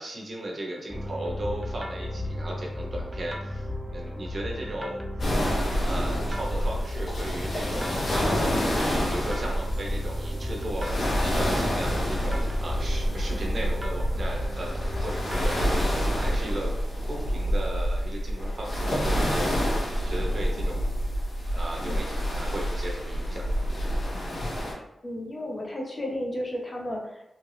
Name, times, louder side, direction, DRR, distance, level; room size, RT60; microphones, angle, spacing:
voice 1, 0.0-5.0 5.8-8.5 8.7-16.7 17.1-20.9 21.5-23.6, right 1 dB, 55° right, -1 dB, 0.9 m, -36 dB
sound 1, 0.9-16.4, left 1 dB, 20° right, 0.5 m, -35 dB
sound 2, 5.2-24.7, equal, 70° left, 1.1 m, -28 dB
voice 2, 25.0-27.2, left 1 dB, 35° left, -1 dB, 0.9 m, -33 dB
3.1 x 2.5 x 3.3 m, 0.84 s
cardioid pair, 55°, 0 cm